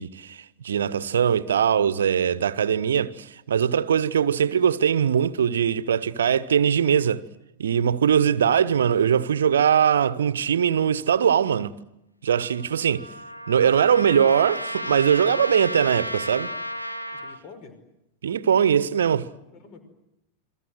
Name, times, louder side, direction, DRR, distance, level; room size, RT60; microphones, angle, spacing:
voice 1, 0.0-7.2 7.6-11.8 12.2-13.1 13.5-16.5 18.2-19.3, right 8 dB, 65° right, 1.0 m, -21 dB
Trumpet, 12.3-17.4, left 1 dB, 85° left, 2.2 m, -33 dB
voice 2, 17.1-17.8 19.4-19.8, left 4 dB, 40° left, 5.4 m, -48 dB
29.0 x 23.0 x 7.9 m
figure-of-eight pair, 90°, 0 cm